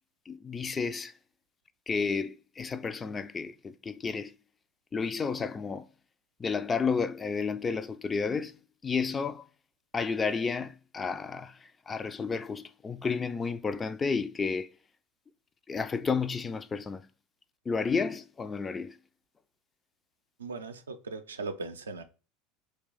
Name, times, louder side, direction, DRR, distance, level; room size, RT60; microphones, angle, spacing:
voice 1, 0.3-1.1 1.9-4.3 4.9-5.9 6.4-8.5 8.8-9.4 9.9-14.7 15.7-17.1 17.7-19.0, left 5 dB, 25° left, 0.3 m, -31 dB
voice 2, 20.4-22.0, right 3 dB, 85° right, 0.4 m, -38 dB
3.3 x 2.9 x 3.8 m
figure-of-eight pair, 75°, 0 cm